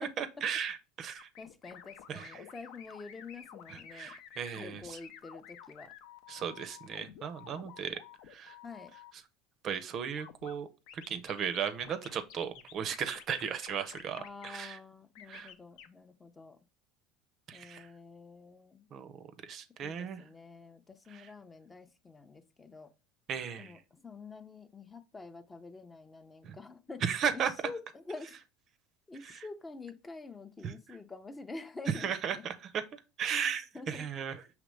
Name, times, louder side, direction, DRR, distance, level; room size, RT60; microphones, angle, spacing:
voice 1, 0.0-1.3 2.1-2.5 3.7-5.0 6.3-8.0 8.3-8.6 9.6-10.7 10.9-14.8 15.3-15.5 17.5-17.9 18.9-20.2 21.1-21.3 23.3-23.7 26.4-26.6 27.0-27.5 29.2-29.5 30.6-30.7 31.9-34.4, right 7 dB, 45° right, 0.5 m, -36 dB
sound 1, 1.2-9.1 10.2-10.5 10.9-14.6 15.2-15.9, left 9 dB, 65° left, 0.5 m, -51 dB
voice 2, 1.4-4.1 4.6-5.9 8.6-8.9 14.1-16.6 17.5-18.9 19.8-22.9 23.6-27.0 27.3-27.8 28.1-28.4 29.1-32.4 33.7-34.1, left 3 dB, 20° left, 0.5 m, -47 dB
5.0 x 3.0 x 3.2 m
hypercardioid pair, 80°, 0 cm